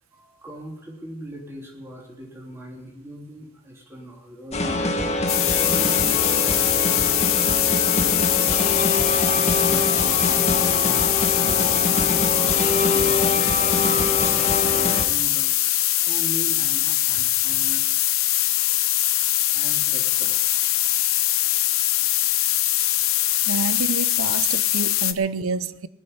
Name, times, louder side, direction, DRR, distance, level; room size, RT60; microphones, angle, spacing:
voice 1, 0.1-5.0 5.6-7.2 7.4-9.2 9.6-17.9 19.5-20.4, equal, 10° right, 3.2 m, -40 dB
sound 1, 4.5-15.0, left 2 dB, 30° left, 2.0 m, -24 dB
sound 2, 5.3-25.1, left 14 dB, 75° left, 0.8 m, -22 dB
voice 2, 23.5-25.9, right 4 dB, 75° right, 0.7 m, -28 dB
19.5 x 6.6 x 9.6 m
head